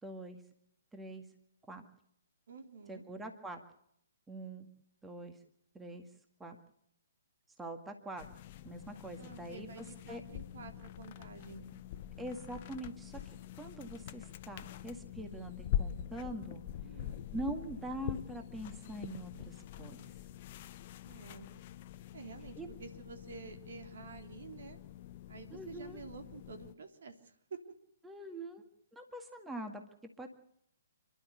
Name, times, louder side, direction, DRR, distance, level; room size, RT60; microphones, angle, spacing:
voice 1, 0.0-0.4 0.9-1.3 1.7-1.8 2.9-3.6 4.3-4.7 5.0-5.4 5.7-6.1 6.4-6.6 7.6-8.2 8.6-10.2 12.2-16.6 17.3-20.0 22.6-22.8 25.5-26.0 28.0-28.7 28.9-29.8 30.2-30.3, right 1 dB, 10° right, 6 dB, 2.0 m, -43 dB
voice 2, 2.5-3.0 9.2-11.7 16.8-17.3 21.0-21.5 22.1-24.8 25.3-27.6, right 5 dB, 60° right, 6 dB, 3.6 m, -50 dB
sound 1, 8.2-26.7, left 11 dB, 40° left, 0.9 m, -44 dB
29.0 x 12.5 x 8.1 m, 0.75 s
figure-of-eight pair, 130°, 0 cm